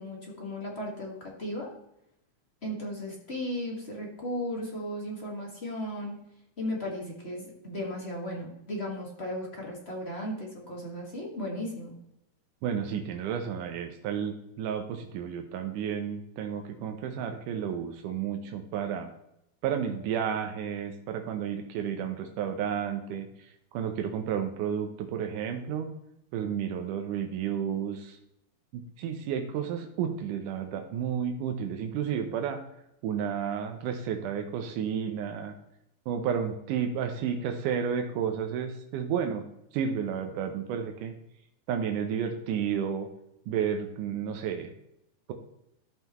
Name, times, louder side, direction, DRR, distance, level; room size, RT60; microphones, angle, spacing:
voice 1, 0.0-1.7 2.6-6.1 6.6-11.9, left 1 dB, 30° left, -2 dB, 1.3 m, -36 dB
voice 2, 12.6-19.1 19.6-25.9 26.3-28.2 28.7-32.6 33.0-35.5 36.1-39.4 39.7-41.1 41.7-43.1 43.5-44.7, right 8 dB, 90° right, 5 dB, 2.3 m, -32 dB
14.0 x 5.6 x 3.0 m, 0.81 s
omnidirectional pair, 3.5 m